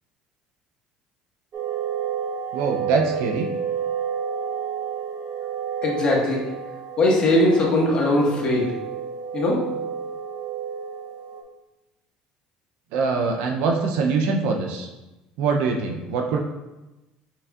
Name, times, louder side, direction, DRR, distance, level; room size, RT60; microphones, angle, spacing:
sound 1, 1.5-11.4, right 8 dB, 50° right, 0.7 m, -30 dB
voice 1, 2.5-3.5 12.9-14.9 15.4-16.4, right 4 dB, 75° right, 2 dB, 0.5 m, -23 dB
voice 2, 5.8-6.4 7.0-8.7 9.3-9.6, left 1 dB, 40° left, -3 dB, 1.4 m, -20 dB
5.9 x 3.5 x 2.4 m, 1.0 s
supercardioid pair, 105°, 2 cm